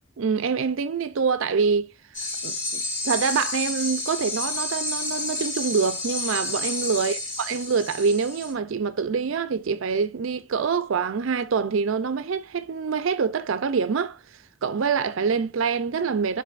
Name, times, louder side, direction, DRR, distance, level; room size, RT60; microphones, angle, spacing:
voice 1, 0.2-1.9 2.4-16.4, right 5 dB, 65° right, 0.5 m, -25 dB
sound 1, 2.1-8.5, left 2 dB, 40° left, 2.1 m, -30 dB
11.5 x 4.0 x 2.5 m
head